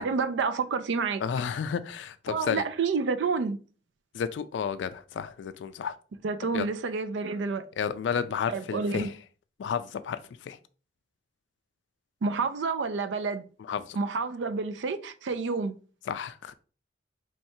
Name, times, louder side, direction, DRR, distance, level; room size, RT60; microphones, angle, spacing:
voice 1, 0.0-1.2 2.3-3.6 6.2-7.6 8.5-9.1 12.2-13.5 14.0-15.7, right 4 dB, 80° right, 0.4 m, -29 dB
voice 2, 1.2-2.6 4.1-5.9 6.5-6.7 7.8-9.1 9.6-10.6 13.6-14.0 16.1-16.5, left 7 dB, 75° left, 0.3 m, -32 dB
4.5 x 3.2 x 2.7 m
head